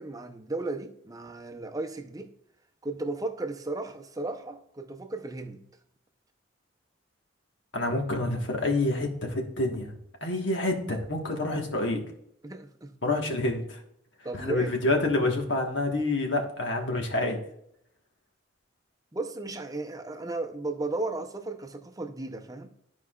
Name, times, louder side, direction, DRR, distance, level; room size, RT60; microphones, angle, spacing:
voice 1, 0.0-2.3 2.8-5.6 12.4-12.9 14.2-14.7 19.1-22.7, right 2 dB, 20° right, 0.7 m, -35 dB
voice 2, 7.7-10.0 10.2-12.0 13.0-13.8 14.3-17.4, left 2 dB, 65° left, 1.4 m, -27 dB
13.5 x 4.8 x 2.4 m
head